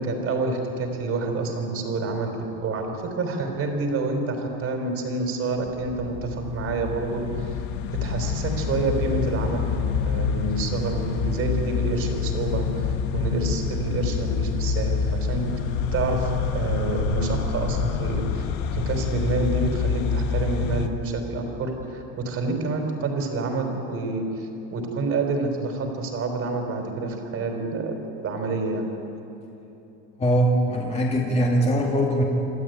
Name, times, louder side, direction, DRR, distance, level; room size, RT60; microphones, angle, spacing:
voice 1, 0.0-7.5 8.0-9.7 10.0-15.5 15.9-18.5 18.7-28.9, right 3 dB, 45° right, 4 dB, 4.4 m, -28 dB
sound 1, 5.6-20.9, left 5 dB, 75° left, 1.6 m, -27 dB
voice 2, 30.2-32.2, right 1 dB, 20° left, -1 dB, 2.6 m, -21 dB
27.0 x 12.5 x 9.4 m, 2.9 s
cardioid pair, 130°, 33 cm